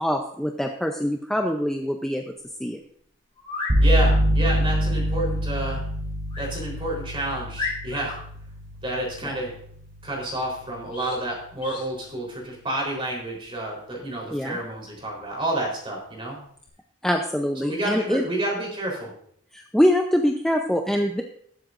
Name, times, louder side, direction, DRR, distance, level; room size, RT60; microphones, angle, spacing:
voice 1, 0.0-2.2 2.6-2.8 9.2-9.4 14.3-14.6 17.0-18.2 19.5-21.2, equal, 5° left, 2 dB, 0.5 m, -24 dB
sound 1, 3.3-3.8 6.3-6.5 7.0-7.1 7.5-8.2 10.9-11.2 11.6-11.9, left 4 dB, 25° left, 4.9 m, -33 dB
sound 2, 3.7-11.4, equal, 60° right, 3.3 m, -26 dB
voice 2, 3.8-5.8 6.4-8.2 8.8-9.5 10.0-16.4 17.6-19.1, right 1 dB, 25° right, -2 dB, 3.7 m, -29 dB
19.5 x 7.8 x 2.5 m, 0.65 s
head